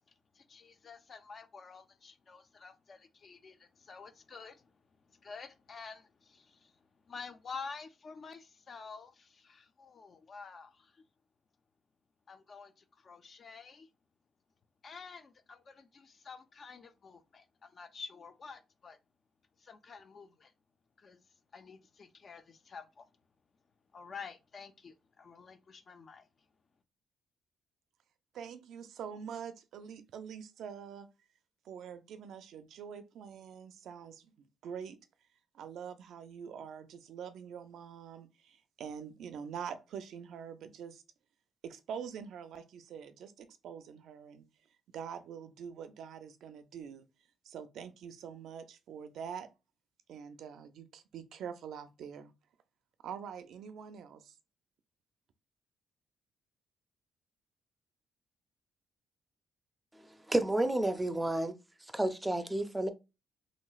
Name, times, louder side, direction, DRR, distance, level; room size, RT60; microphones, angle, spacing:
voice 1, 0.3-4.7 5.1-6.8 7.0-11.0 12.3-13.9 14.8-19.0 19.6-20.5 21.0-21.2 21.5-23.1 23.9-26.3, left 5 dB, 45° left, 0.5 m, -49 dB
voice 2, 28.3-31.1 31.6-34.3 34.6-35.0 35.5-41.0 41.6-44.5 44.9-47.1 47.5-49.5 50.1-52.3 53.0-54.3, right 7 dB, 75° right, 0.4 m, -45 dB
voice 3, 60.3-61.6 61.9-62.9, right 1 dB, 10° right, 0.5 m, -30 dB
3.0 x 2.9 x 2.3 m
cardioid pair, 90°, 0 cm